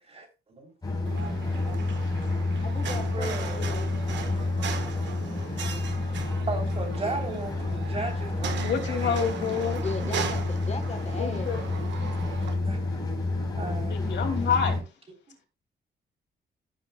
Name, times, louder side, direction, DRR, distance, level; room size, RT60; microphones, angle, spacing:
voice 1, 0.1-0.7 2.6-3.7 6.5-10.1 12.7-12.8 13.6-13.9, right 2 dB, 35° right, 3.3 m, -36 dB
sound 1, 0.8-14.8, left 2 dB, 20° left, 4.3 m, -29 dB
sound 2, 1.0-12.5, right 7 dB, 80° right, 1.4 m, -38 dB
voice 2, 2.6-4.0 9.7-11.5, left 4 dB, 35° left, 1.1 m, -37 dB
voice 3, 8.6-9.8 11.2-11.6 13.9-14.8, left 7 dB, 75° left, 2.5 m, -28 dB
15.0 x 7.5 x 2.3 m
cardioid pair, 130°, 18 cm